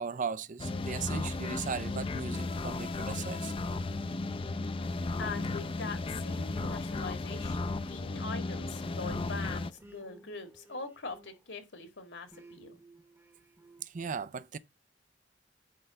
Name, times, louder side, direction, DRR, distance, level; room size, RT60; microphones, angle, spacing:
voice 1, 0.0-3.5 13.8-14.6, right 6 dB, 45° right, 0.4 m, -37 dB
sound 1, 0.6-9.7, left 3 dB, 30° left, 0.5 m, -35 dB
sound 2, 0.6-11.7 12.3-13.8, right 1 dB, 15° right, 1.0 m, -55 dB
voice 2, 5.2-12.8, left 4 dB, 75° left, 1.8 m, -42 dB
9.6 x 3.3 x 6.9 m
head